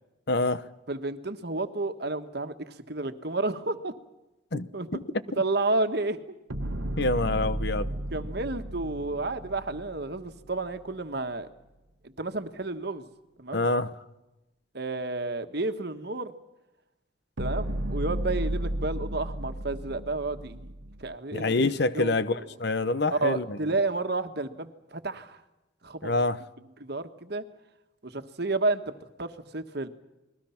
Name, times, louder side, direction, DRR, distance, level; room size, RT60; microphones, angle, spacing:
voice 1, 0.3-0.7 4.5-5.0 7.0-7.9 13.5-13.9 21.3-23.6 26.0-26.4, left 2 dB, 55° left, 0.9 m, -26 dB
voice 2, 0.9-3.9 4.5-4.9 5.4-6.4 8.1-11.5 12.0-13.0 13.4-13.7 14.7-16.3 17.4-20.7 21.0-21.6 21.9-22.5 23.1-25.4 25.8-26.1 26.8-27.4 28.0-28.8 29.2-29.9, right 2 dB, 55° right, 1.5 m, -31 dB
sound 1, 6.5-10.8 17.4-21.1, right 1 dB, 75° right, 1.4 m, -33 dB
29.5 x 21.0 x 5.9 m
head